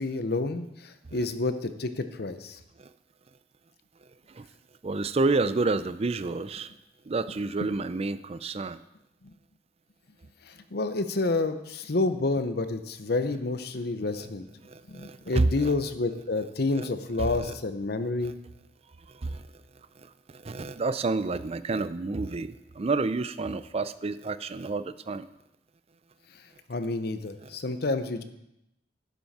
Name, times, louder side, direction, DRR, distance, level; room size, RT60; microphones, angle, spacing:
voice 1, 0.0-2.6 9.2-9.3 10.4-14.5 14.9-18.4 26.7-28.2, left 3 dB, 65° left, 10 dB, 0.8 m, -29 dB
voice 2, 4.8-6.7 7.1-8.8 14.6-15.7 16.7-16.9 17.2-17.5 18.2-18.3 19.2-19.5 20.0-25.3 27.4-27.5, right 3 dB, 35° right, 13 dB, 0.5 m, -29 dB
11.5 x 9.3 x 4.2 m, 0.86 s
head